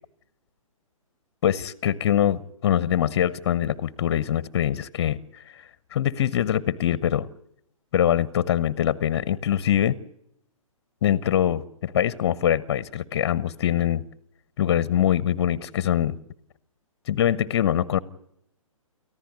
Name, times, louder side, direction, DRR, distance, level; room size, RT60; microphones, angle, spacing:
voice 1, 1.4-5.6 5.9-7.3 7.9-10.0 11.0-14.0 14.6-16.2 17.1-18.0, left 10 dB, 40° left, 19 dB, 0.9 m, -23 dB
29.0 x 14.5 x 9.8 m, 0.77 s
figure-of-eight pair, 125°, 18 cm